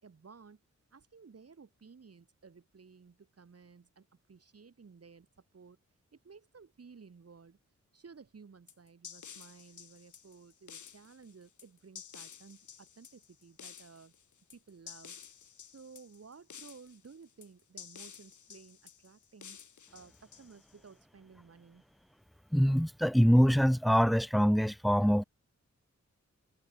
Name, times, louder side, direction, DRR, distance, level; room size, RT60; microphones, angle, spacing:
voice 1, 0.0-0.6 0.9-5.8 6.1-7.6 7.9-14.1 14.5-15.2 15.6-19.6 19.9-21.8, right 5 dB, 55° right, 4.9 m, -55 dB
sound 1, 8.7-20.9, left 7 dB, 80° left, 1.6 m, -52 dB
voice 2, 22.5-25.2, equal, ahead, 1.1 m, -24 dB
wide cardioid pair, 150°, 30 cm